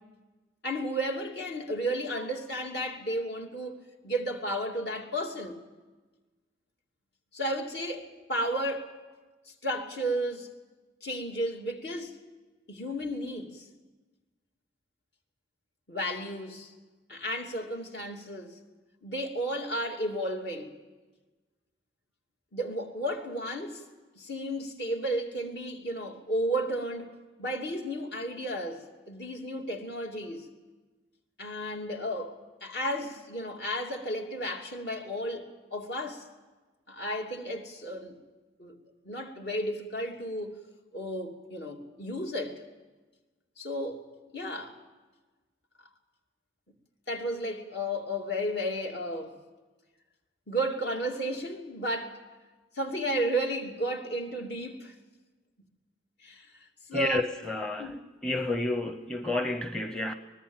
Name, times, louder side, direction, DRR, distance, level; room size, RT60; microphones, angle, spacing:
voice 1, 0.6-3.8 4.0-5.6 7.3-8.9 9.6-10.5 11.0-12.2 12.7-13.7 15.9-16.7 17.1-18.6 19.0-20.7 22.5-23.8 24.2-27.1 27.4-30.5 31.4-36.3 36.9-38.2 38.6-38.7 39.0-40.6 40.9-42.6 43.6-44.0 44.3-44.8 47.1-49.4 50.5-52.2 52.7-54.9 56.2-56.5 56.9-57.2 57.8-58.0, equal, 60° left, 2.8 m, -33 dB
voice 2, 56.9-58.0 58.2-60.1, left 2 dB, 5° left, 0.8 m, -30 dB
24.5 x 20.0 x 7.3 m
head